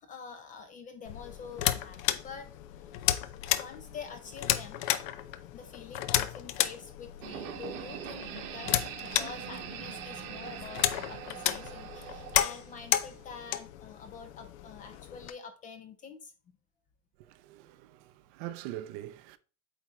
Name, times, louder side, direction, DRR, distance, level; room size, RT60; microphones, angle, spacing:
voice 1, 0.0-2.5 3.5-4.8 5.5-16.6, left 6 dB, 20° left, 0.4 m, -46 dB
sound 1, 1.0-15.3, left 13 dB, 70° left, 0.8 m, -33 dB
sound 2, 7.2-13.3, right 9 dB, 90° right, 1.5 m, -42 dB
voice 2, 17.2-19.4, right 13 dB, 45° right, 0.6 m, -43 dB
8.4 x 3.6 x 4.3 m
supercardioid pair, 155°, 42 cm